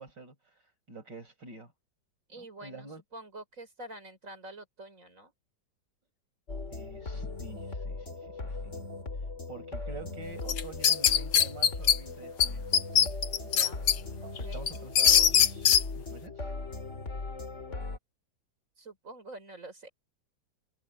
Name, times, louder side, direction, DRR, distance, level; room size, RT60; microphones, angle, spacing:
voice 1, 0.0-1.7 2.4-3.0 6.7-8.8 9.1-12.7 14.3-15.7 15.9-16.5, right 4 dB, 60° right, 6.7 m, -47 dB
voice 2, 2.3-5.3 13.4-13.9 14.2-14.6 18.8-19.9, right 2 dB, 40° right, 5.7 m, -47 dB
sound 1, 6.5-18.0, left 3 dB, 35° left, 2.8 m, -38 dB
sound 2, 10.5-12.0 12.4-12.5 12.7-14.0 14.4-15.8, left 8 dB, 70° left, 1.8 m, -21 dB
omnidirectional pair, 2.1 m